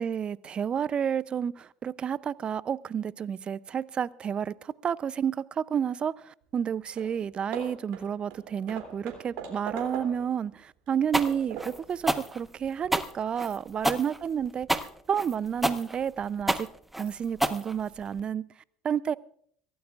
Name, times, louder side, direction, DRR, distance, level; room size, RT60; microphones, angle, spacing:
voice 1, 0.0-16.7 17.0-18.5 18.8-19.1, right 8 dB, 40° right, 20 dB, 0.6 m, -30 dB
Hammer / Wood, 6.6-6.7 7.0-7.2 7.5-10.4 10.9-11.9, right 6 dB, 70° right, 3.0 m, -41 dB
sound 1, 11.1-18.2, right 1 dB, 5° right, 1.1 m, -29 dB
23.5 x 16.5 x 2.5 m, 0.63 s
hypercardioid pair, 70°, 3 cm